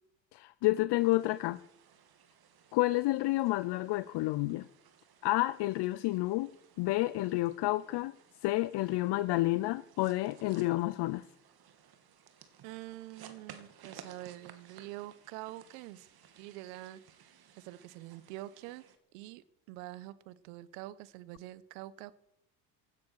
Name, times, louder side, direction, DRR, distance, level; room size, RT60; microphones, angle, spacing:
voice 1, 0.3-1.6 2.7-4.7 5.2-6.5 6.8-8.1 8.4-11.2, left 19 dB, 55° left, 16 dB, 0.7 m, -30 dB
sound 1, 1.0-19.0, right 8 dB, 50° right, 2.6 m, -58 dB
voice 2, 12.6-16.1 16.4-17.0 17.3-18.8 19.1-22.2, right 16 dB, 75° right, 17 dB, 1.2 m, -46 dB
16.5 x 9.6 x 6.5 m, 0.75 s
hypercardioid pair, 75°, 49 cm